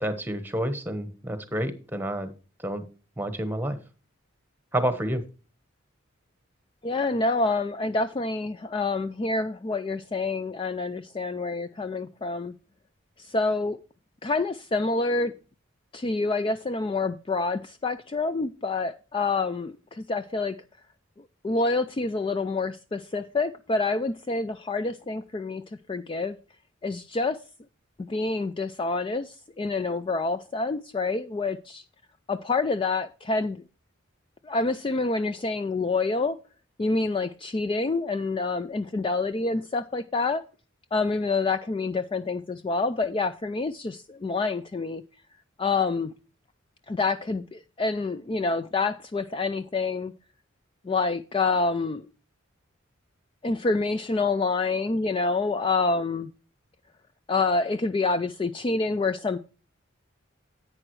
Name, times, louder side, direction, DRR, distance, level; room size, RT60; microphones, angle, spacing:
voice 1, 0.0-2.3 2.6-2.8 3.2-3.8 4.7-5.2, right 1 dB, 10° right, 1.1 m, -29 dB
voice 2, 6.8-12.5 13.2-13.8 14.2-15.3 15.9-20.6 21.4-25.6 25.9-26.4 26.8-27.4 28.1-31.8 32.3-33.6 34.4-36.4 36.8-40.4 40.9-45.0 45.6-46.1 46.9-50.1 50.8-52.0 53.4-56.3 57.3-59.4, left 3 dB, 25° left, 0.3 m, -27 dB
10.5 x 8.8 x 3.1 m
head